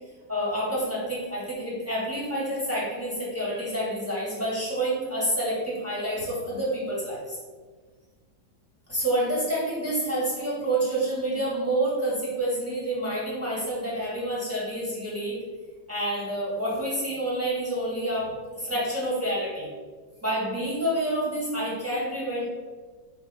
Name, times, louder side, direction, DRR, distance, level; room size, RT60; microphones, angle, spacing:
voice 1, 0.3-7.4 8.9-15.4 15.9-19.7 20.2-22.5, right 1 dB, 10° right, -7 dB, 0.8 m, -28 dB
4.5 x 2.2 x 4.6 m, 1.4 s
omnidirectional pair, 2.1 m